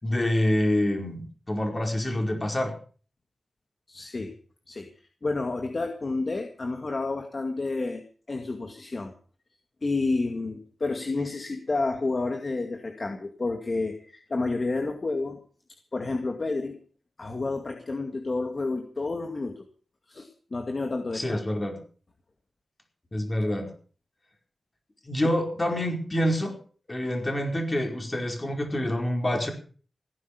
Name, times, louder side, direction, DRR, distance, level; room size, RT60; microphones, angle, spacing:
voice 1, 0.0-2.7 21.1-21.8 23.1-23.7 25.0-26.6 26.9-29.5, left 1 dB, 30° left, 3 dB, 4.8 m, -27 dB
voice 2, 3.9-4.3 4.7-4.9 5.2-8.0 8.3-9.1 9.8-15.4 15.9-16.8 17.2-19.6 20.1-21.6, left 3 dB, 45° left, 4 dB, 2.2 m, -30 dB
17.0 x 10.5 x 6.7 m, 0.42 s
wide cardioid pair, 85°, 0 cm